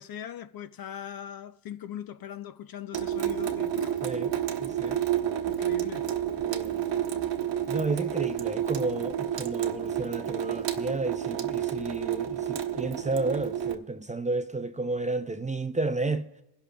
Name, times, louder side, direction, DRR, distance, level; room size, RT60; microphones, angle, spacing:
voice 1, 0.0-4.1 5.5-6.1, left 10 dB, 45° left, 0.6 m, -40 dB
Water tap faucet / Sink (filling or washing) / Drip, 2.9-13.7, right 10 dB, 60° right, 1.0 m, -30 dB
voice 2, 4.6-5.0 6.4-6.8 7.7-16.3, right 3 dB, 15° right, 0.5 m, -32 dB
23.5 x 11.0 x 2.3 m
cardioid pair, 80°, 49 cm